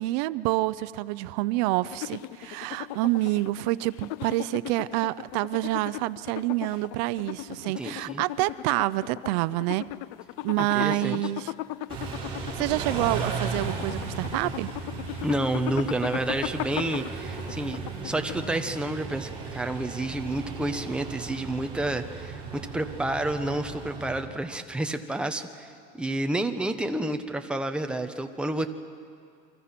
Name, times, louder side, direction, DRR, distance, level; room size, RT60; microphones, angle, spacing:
voice 1, 0.0-9.9 10.4-11.5 12.6-14.7, right 18 dB, 80° right, 16 dB, 0.6 m, -27 dB
sound 1, 1.8-18.7, left 16 dB, 75° left, 0.6 m, -37 dB
voice 2, 7.7-8.2 10.6-11.2 15.2-28.7, right 1 dB, 5° right, 5 dB, 1.1 m, -30 dB
Car / Idling / Accelerating revving vroom, 11.9-24.2, right 4 dB, 25° right, 6.1 m, -36 dB
29.5 x 24.0 x 6.0 m, 2.4 s
cardioid pair, 150°, 21 cm